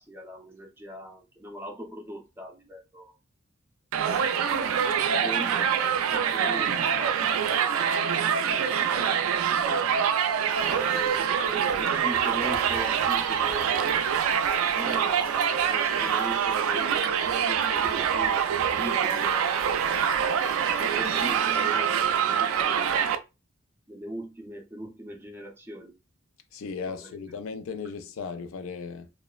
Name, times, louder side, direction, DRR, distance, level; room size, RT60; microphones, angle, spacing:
voice 1, 0.0-3.1 4.0-4.5 5.2-8.4 10.6-13.7 14.6-19.6 20.8-23.2 23.9-25.9 26.9-27.1, right 1 dB, 10° right, 0.5 m, -40 dB
Crowd, 3.9-23.2, right 8 dB, 85° right, 0.3 m, -25 dB
sound 1, 10.5-21.4, left 1 dB, 45° left, 0.9 m, -47 dB
voice 2, 26.5-29.1, left 5 dB, 75° left, 0.4 m, -36 dB
3.0 x 2.0 x 2.3 m
head